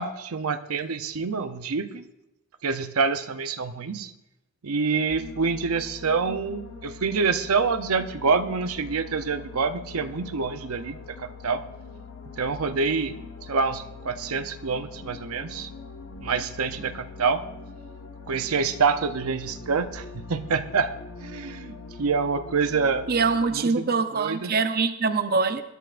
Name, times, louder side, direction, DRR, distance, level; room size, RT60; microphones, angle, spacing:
voice 1, 0.0-2.0 2.6-4.1 4.6-11.2 11.4-11.6 12.4-13.2 13.5-15.7 16.2-17.4 18.3-20.9 21.2-23.1 23.5-23.8 24.2-24.5, right 5 dB, 85° right, 9 dB, 0.6 m, -26 dB
sound 1, 5.1-23.4, left 4 dB, 65° left, 1.3 m, -42 dB
voice 2, 23.1-25.6, right 4 dB, 45° right, 9 dB, 0.6 m, -24 dB
20.5 x 11.0 x 2.5 m, 0.92 s
head